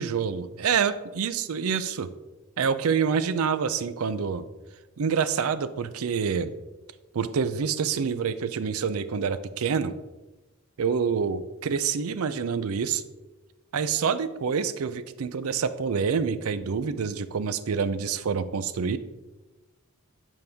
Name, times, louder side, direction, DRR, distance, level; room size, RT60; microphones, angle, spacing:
voice 1, 0.0-2.1 2.6-4.4 5.0-6.5 7.1-9.9 10.8-13.0 13.7-19.0, right 6 dB, 70° right, 14 dB, 0.5 m, -27 dB
9.2 x 5.4 x 3.4 m, 1.1 s
head